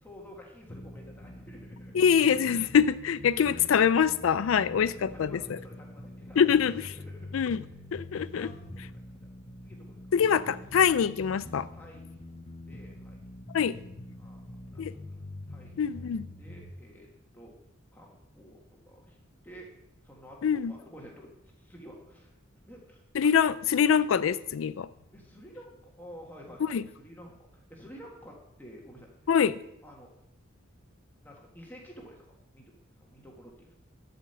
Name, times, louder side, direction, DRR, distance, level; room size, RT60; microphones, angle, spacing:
voice 1, 0.0-1.9 4.3-6.6 6.9-7.4 8.2-8.9 9.2-9.3 9.6-10.0 11.5-13.2 14.2-15.2 15.5-16.1 16.4-17.5 17.9-19.7 20.0-22.4 22.7-23.0 25.1-29.1 29.8-30.1 31.2-32.3 32.5-33.7, equal, 10° left, 1.5 m, -51 dB
sound 1, 0.7-16.7, left 1 dB, 30° left, 0.7 m, -45 dB
voice 2, 1.9-5.6 6.4-6.7 7.3-7.6 7.9-8.5 10.1-11.6 13.5-13.8 14.8-14.9 15.8-16.3 20.4-20.7 23.1-24.9 26.7-26.8 29.3-29.6, left 7 dB, 75° left, 0.4 m, -24 dB
12.0 x 5.2 x 7.8 m
head